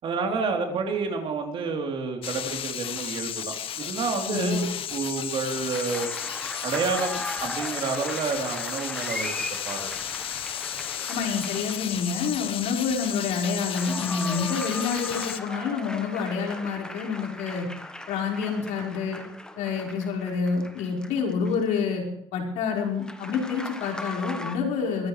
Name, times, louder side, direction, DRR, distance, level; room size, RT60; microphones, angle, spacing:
voice 1, 0.0-6.1 6.6-9.3 9.7-9.9, right 4 dB, 45° right, 2 dB, 3.6 m, -29 dB
sound 1, 2.2-15.4, left 10 dB, 50° left, 1.1 m, -34 dB
voice 2, 4.3-4.6 11.1-17.7 18.1-19.2 19.6-22.0 22.3-25.1, left 5 dB, 80° left, 0 dB, 5.1 m, -28 dB
sound 2, 5.5-12.1 13.4-21.8 23.0-24.6, left 1 dB, 5° left, 1.3 m, -38 dB
23.5 x 14.5 x 3.3 m, 0.75 s
cardioid pair, 135°, 12 cm